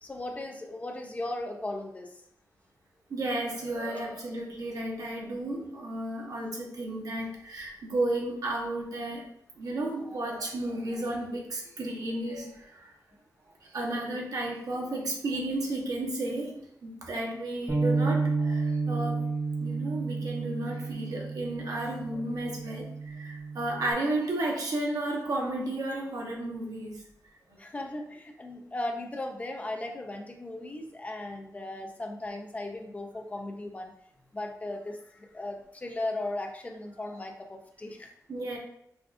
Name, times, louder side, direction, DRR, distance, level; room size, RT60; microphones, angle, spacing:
voice 1, 0.0-2.1 17.0-17.5 27.6-33.9 34.3-38.1, left 2 dB, 20° left, 3 dB, 0.5 m, -37 dB
voice 2, 3.1-9.2 9.6-12.9 13.6-19.2 19.6-27.1 38.3-38.6, right 1 dB, 75° right, -1 dB, 1.0 m, -33 dB
Bass guitar, 17.7-23.9, right 4 dB, 10° right, 0.8 m, -31 dB
4.9 x 2.4 x 2.5 m, 0.70 s
wide cardioid pair, 140°, 6 cm